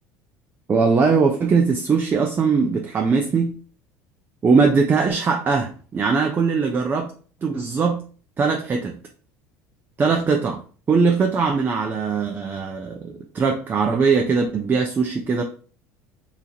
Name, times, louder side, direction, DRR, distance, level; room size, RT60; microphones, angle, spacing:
voice 1, 0.7-3.5 4.4-7.1 7.4-8.0 8.4-9.0 10.0-10.6 10.9-15.4, right 5 dB, 25° right, 2 dB, 0.5 m, -20 dB
2.9 x 2.4 x 4.1 m, 0.40 s
supercardioid pair, 105°, 8 cm